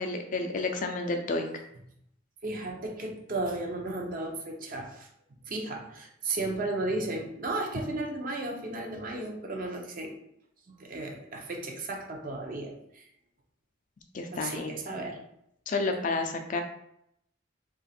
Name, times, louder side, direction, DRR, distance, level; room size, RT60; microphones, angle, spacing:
voice 1, 0.0-1.5 14.1-14.7 15.7-16.6, left 3 dB, 40° left, 5 dB, 0.4 m, -30 dB
voice 2, 2.4-5.1 5.5-10.2 10.8-13.0 14.3-15.2, right 2 dB, 45° right, 1 dB, 0.6 m, -34 dB
3.1 x 2.4 x 4.1 m, 0.75 s
head